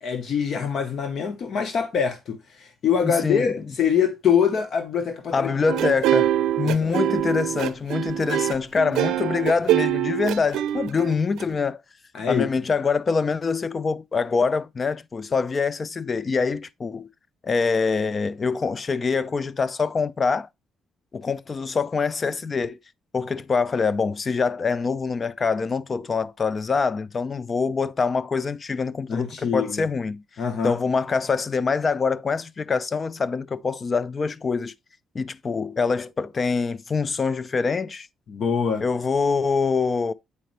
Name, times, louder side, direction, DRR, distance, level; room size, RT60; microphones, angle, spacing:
voice 1, 0.0-5.6 6.6-7.0 12.1-12.5 29.1-29.9 30.4-30.7 38.3-38.8, left 7 dB, 60° left, 0.9 m, -24 dB
voice 2, 3.0-3.5 5.3-11.8 12.3-17.1 17.4-20.5 21.1-22.8 23.1-30.2 30.6-34.7 35.1-38.1 38.8-40.1, left 5 dB, 35° left, 0.3 m, -25 dB
sound 1, 5.7-11.4, right 12 dB, 85° right, 0.5 m, -24 dB
8.3 x 5.0 x 3.1 m
cardioid pair, 90°, 0 cm